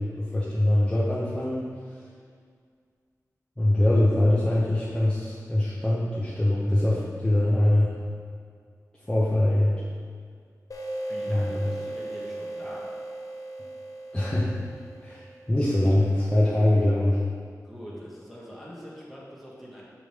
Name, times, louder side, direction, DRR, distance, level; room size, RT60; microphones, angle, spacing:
voice 1, 0.0-1.6 3.6-7.9 9.1-9.8 11.3-11.5 14.1-14.5 15.0-17.2, left 1 dB, 15° left, -7 dB, 0.8 m, -23 dB
sound 1, 10.7-16.0, right 1 dB, 60° left, 0.7 m, -37 dB
voice 2, 11.1-12.9 17.6-19.8, equal, ahead, -6 dB, 1.5 m, -43 dB
6.6 x 5.0 x 3.2 m, 2.1 s
wide cardioid pair, 85°, 6 cm